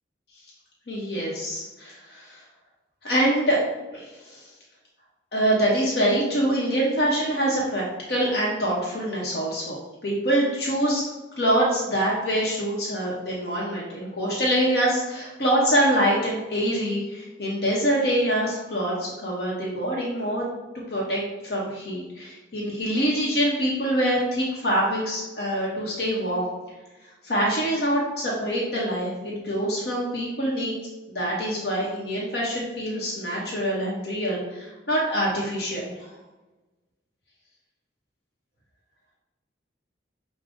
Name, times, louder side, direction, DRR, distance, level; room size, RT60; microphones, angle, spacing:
voice 1, 0.9-2.4 3.0-3.6 3.9-4.4 5.3-7.8 8.1-11.0 11.4-20.5 20.9-26.4 27.2-30.7 31.1-36.1, right 1 dB, 60° left, -4 dB, 0.8 m, -25 dB
6.0 x 2.1 x 3.5 m, 1.1 s
head